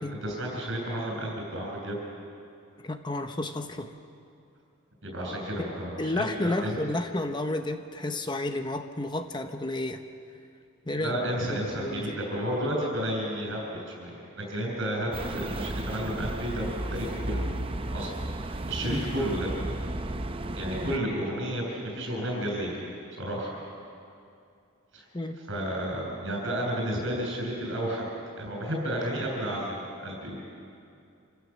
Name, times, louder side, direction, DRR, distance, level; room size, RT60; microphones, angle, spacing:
voice 1, 0.1-2.0 5.0-6.8 11.0-17.5 17.9-18.1 18.4-19.5 20.5-22.8 23.2-23.6 24.9-25.1 25.5-28.1 28.4-30.4, equal, 55° right, -1 dB, 7.0 m, -32 dB
voice 2, 2.8-3.9 5.6-5.7 6.0-10.0 10.9-11.2 11.5-12.2 18.8-19.0 25.1-25.4, left 2 dB, 20° left, 7 dB, 0.8 m, -31 dB
sound 1, 15.1-21.0, right 1 dB, 25° right, 0.6 m, -34 dB
28.0 x 16.0 x 7.2 m, 2.5 s
head